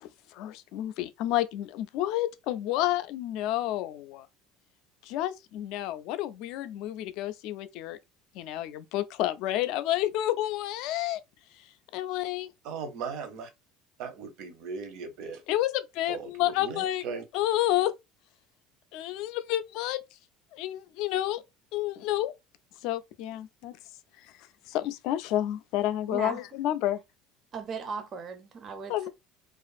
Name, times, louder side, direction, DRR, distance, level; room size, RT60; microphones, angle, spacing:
voice 1, 0.0-4.3 5.0-8.0 8.3-11.2 11.9-12.5 15.5-17.0 17.3-17.9 18.9-20.0 20.5-21.4 21.7-22.3 22.8-23.8 24.7-27.0 28.9-29.1, left 14 dB, 70° left, 0.3 m, -30 dB
voice 2, 12.6-13.5 14.0-15.4 16.1-17.2, right 5 dB, 65° right, 0.7 m, -38 dB
voice 3, 27.5-29.1, right 5 dB, 40° right, 0.4 m, -37 dB
2.5 x 2.4 x 2.3 m
cardioid pair, 125°, 0 cm